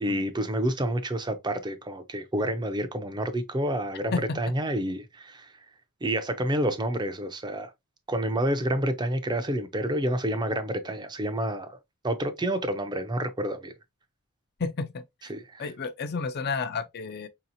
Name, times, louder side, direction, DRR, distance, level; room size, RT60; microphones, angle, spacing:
voice 1, 0.0-5.5 6.0-7.7 8.1-11.8 12.0-13.7 15.3-15.7, right 1 dB, 20° right, 0.5 m, -29 dB
voice 2, 14.6-15.0 15.6-17.3, left 4 dB, 45° left, 0.5 m, -31 dB
4.8 x 2.8 x 2.6 m
head